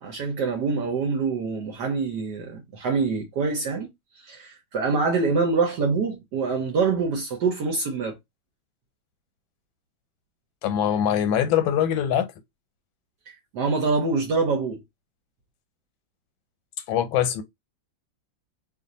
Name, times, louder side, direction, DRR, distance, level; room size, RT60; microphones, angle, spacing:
voice 1, 0.0-8.2 13.3-14.8, right 4 dB, 65° right, 1.2 m, -25 dB
voice 2, 10.6-12.3 16.9-17.4, left 9 dB, 80° left, 1.5 m, -23 dB
3.1 x 2.5 x 3.9 m
omnidirectional pair, 2.1 m